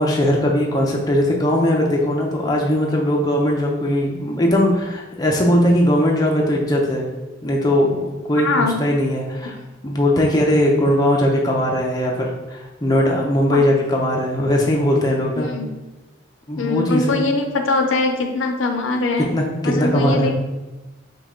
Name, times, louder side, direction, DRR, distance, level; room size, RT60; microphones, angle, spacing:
voice 1, 0.0-7.1 7.4-9.6 9.8-15.5 16.5-17.2 19.3-20.3, left 1 dB, 20° left, -1 dB, 0.5 m, -19 dB
voice 2, 8.4-8.8 13.5-13.7 15.4-15.7 16.6-19.3 19.6-20.3, left 3 dB, 75° left, 4 dB, 0.5 m, -22 dB
5.1 x 2.3 x 3.7 m, 1.1 s
head